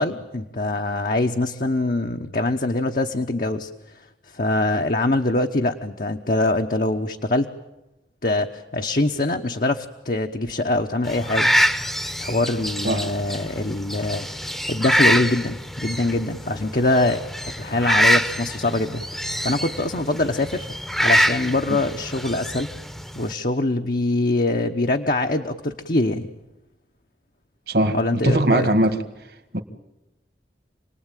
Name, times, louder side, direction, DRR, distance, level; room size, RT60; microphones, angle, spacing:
voice 1, 0.0-7.5 8.2-11.5 12.2-17.2 17.6-19.0 19.4-20.7 21.0-22.7 23.1-26.3 27.9-28.7, left 2 dB, 50° left, 4 dB, 1.0 m, -23 dB
sound 1, 11.1-23.3, equal, ahead, 0.9 m, -25 dB
voice 2, 27.7-28.0 28.2-29.0 29.5-29.6, right 1 dB, 60° right, 8 dB, 1.9 m, -19 dB
28.5 x 19.5 x 9.1 m, 0.98 s
head